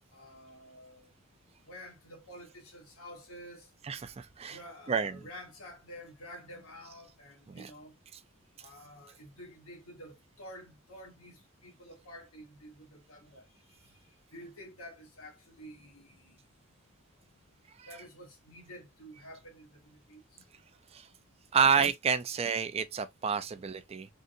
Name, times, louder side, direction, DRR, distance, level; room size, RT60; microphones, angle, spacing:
voice 1, 0.1-1.1 1.6-3.7 4.5-7.9 8.6-16.4 17.8-20.6 21.0-21.2, equal, 90° left, 1.4 m, -50 dB
voice 2, 3.8-4.6 4.9-5.1 7.5-7.7 20.9-21.1 21.5-24.1, right 6 dB, 30° right, 0.3 m, -29 dB
3.8 x 2.5 x 2.6 m
head